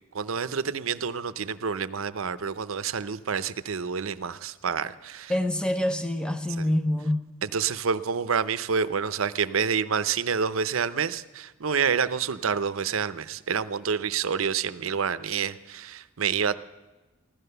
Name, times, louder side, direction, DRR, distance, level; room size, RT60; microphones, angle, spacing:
voice 1, 0.1-5.3 6.6-6.7 7.4-16.6, right 6 dB, 85° right, 14 dB, 0.7 m, -28 dB
voice 2, 5.3-7.3, left 1 dB, 5° left, 6 dB, 0.8 m, -26 dB
16.0 x 13.0 x 6.7 m, 1.2 s
head